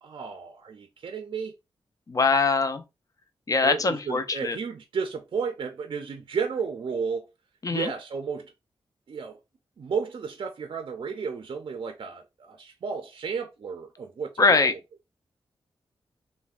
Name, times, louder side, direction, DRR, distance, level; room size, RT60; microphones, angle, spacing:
voice 1, 0.0-1.6 3.6-7.3 7.7-8.5 9.1-9.4 9.8-14.8, right 5 dB, 55° right, 0.4 m, -33 dB
voice 2, 2.1-2.8 3.5-4.6 7.6-7.9 14.4-14.7, left 4 dB, 35° left, 0.4 m, -22 dB
3.2 x 2.1 x 2.4 m
cardioid pair, 75°, 10 cm